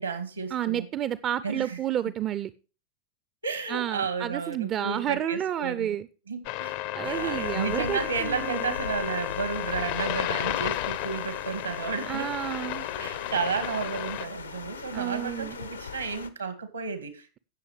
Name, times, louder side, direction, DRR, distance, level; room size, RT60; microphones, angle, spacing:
voice 1, 0.0-0.9 1.4-1.8 3.4-6.0 6.3-12.3 13.0-17.4, right 5 dB, 75° right, 9 dB, 2.2 m, -32 dB
voice 2, 0.5-2.5 3.7-6.1 6.9-8.8 12.1-12.9 14.9-15.6, right 10 dB, 30° right, 16 dB, 0.6 m, -30 dB
sound 1, 6.4-14.3, left 16 dB, 50° left, 0.7 m, -33 dB
sound 2, 7.0-16.3, left 5 dB, 75° left, 1.0 m, -40 dB
17.0 x 7.0 x 3.2 m, 0.34 s
figure-of-eight pair, 90°, 0 cm